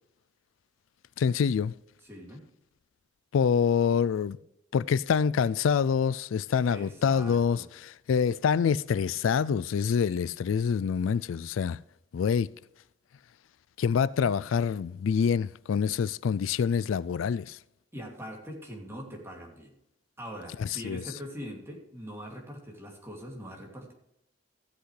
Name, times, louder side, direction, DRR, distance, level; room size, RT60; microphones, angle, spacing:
voice 1, 1.2-1.7 3.3-4.4 4.7-11.8 12.1-12.5 13.8-17.6 20.6-21.0, left 6 dB, 80° left, 0.3 m, -26 dB
voice 2, 2.0-2.4 6.7-7.7 17.9-19.7 20.2-23.9, equal, 15° right, 2.6 m, -42 dB
15.5 x 8.0 x 3.3 m
head